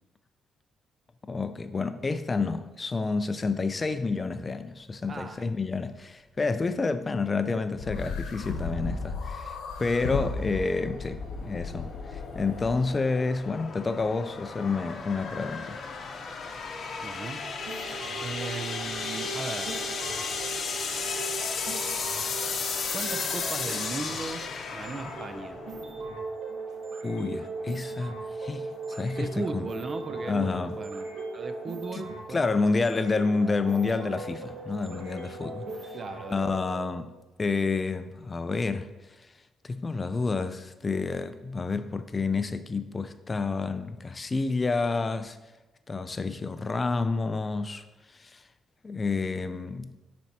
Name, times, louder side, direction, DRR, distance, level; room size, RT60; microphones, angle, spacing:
voice 1, 1.3-15.8 27.0-29.7 30.3-30.8 31.9-32.0 32.3-35.9 36.3-37.1 37.4-38.9 39.2-39.3 39.6-45.4 45.9-48.4 48.8-50.0, left 4 dB, 30° left, 0.3 m, -29 dB
voice 2, 5.1-5.5 17.0-17.4 18.2-19.8 22.9-25.6 29.2-32.6 35.9-36.4, right 3 dB, 40° right, 0.4 m, -38 dB
sound 1, 7.8-12.9, left 4 dB, 85° left, 0.9 m, -35 dB
sound 2, 10.7-26.1, left 5 dB, 55° left, 0.7 m, -35 dB
sound 3, 17.4-36.8, right 3 dB, 75° right, 1.2 m, -39 dB
9.2 x 4.2 x 2.8 m
cardioid pair, 90°, 0 cm